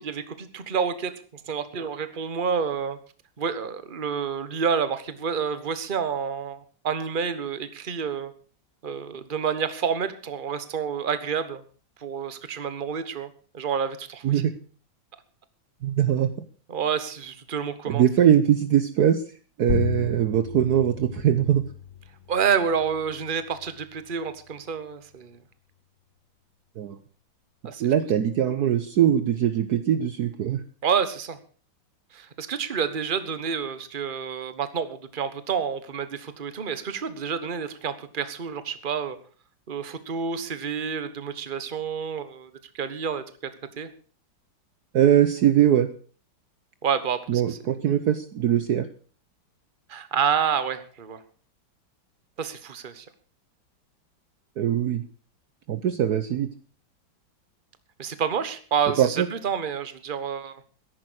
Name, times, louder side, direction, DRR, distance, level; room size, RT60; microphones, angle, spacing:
voice 1, 0.0-3.0 3.4-8.3 8.8-11.6 12.0-14.4 16.7-18.0 22.3-25.4 27.6-27.8 30.8-31.4 32.1-39.2 39.7-43.5 43.8-43.9 46.8-47.6 49.9-51.2 52.4-53.1 58.0-60.6, right 7 dB, 30° right, 12 dB, 1.3 m, -29 dB
voice 2, 15.8-16.3 17.9-19.2 19.6-21.6 26.8-27.0 27.8-30.6 44.9-45.9 47.3-48.9 54.6-55.0 55.7-56.5 59.0-59.3, right 10 dB, 60° right, 11 dB, 1.3 m, -21 dB
sound 1, 19.7-24.8, left 9 dB, 55° left, 1.0 m, -35 dB
14.5 x 11.0 x 6.3 m, 0.41 s
omnidirectional pair, 2.1 m